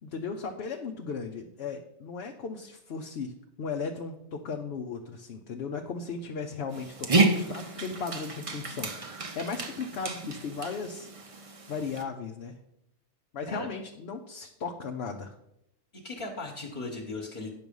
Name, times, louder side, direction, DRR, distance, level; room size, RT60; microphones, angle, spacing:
voice 1, 0.0-3.3 3.6-12.6 13.3-15.4, left 5 dB, 60° left, 3 dB, 0.9 m, -36 dB
Dog, 6.7-12.0, right 3 dB, 30° right, 0.8 m, -30 dB
voice 2, 15.9-17.5, left 2 dB, 40° left, 0 dB, 1.5 m, -37 dB
9.6 x 6.2 x 5.4 m, 0.79 s
omnidirectional pair, 1.2 m